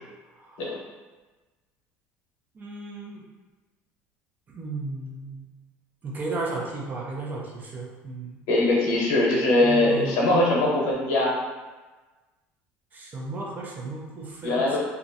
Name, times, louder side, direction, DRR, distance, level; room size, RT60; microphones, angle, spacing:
voice 1, 0.3-0.8 2.5-3.2 4.5-5.4 6.0-8.4 9.5-10.3 12.9-14.8, right 3 dB, 30° right, -2 dB, 0.5 m, -35 dB
voice 2, 8.5-11.3 14.4-14.8, left 2 dB, 70° left, -4 dB, 0.8 m, -21 dB
2.3 x 2.0 x 2.6 m, 1.2 s
supercardioid pair, 105°, 6 cm